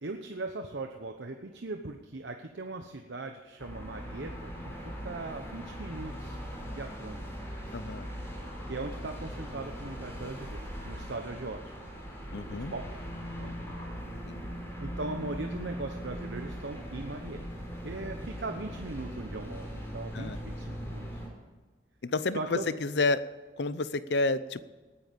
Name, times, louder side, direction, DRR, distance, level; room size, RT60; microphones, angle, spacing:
voice 1, 0.0-6.4 6.6-7.2 7.6-7.8 8.7-11.7 12.3-13.0 13.4-13.5 14.8-17.4 17.8-21.2 22.3-22.7, right 2 dB, 85° right, 5 dB, 1.0 m, -39 dB
sound 1, 3.6-21.3, equal, 15° left, 3.7 m, -40 dB
voice 2, 7.7-8.1 12.3-12.7 14.3-14.4 20.1-20.4 22.0-23.2 23.6-24.7, left 3 dB, 70° left, 16 dB, 0.7 m, -30 dB
18.5 x 10.0 x 5.3 m, 1.4 s
head